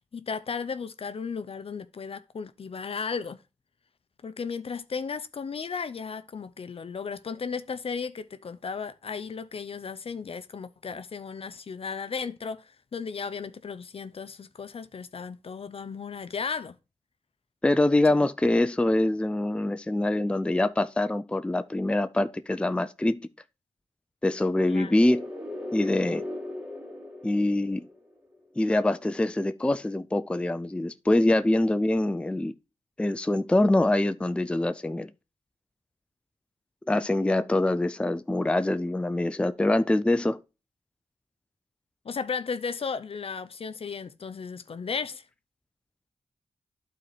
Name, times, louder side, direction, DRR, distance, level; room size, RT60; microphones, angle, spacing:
voice 1, 0.1-3.4 4.2-16.8 24.7-24.9 42.0-45.2, left 5 dB, 55° left, 0.6 m, -35 dB
voice 2, 17.6-23.2 24.2-25.3 25.7-26.2 27.2-27.8 28.6-32.5 33.0-35.1 36.9-40.4, left 1 dB, 10° left, 0.4 m, -24 dB
sound 1, 24.6-28.3, left 1 dB, 10° right, 2.2 m, -38 dB
11.5 x 4.3 x 3.2 m
cardioid pair, 60°, 11 cm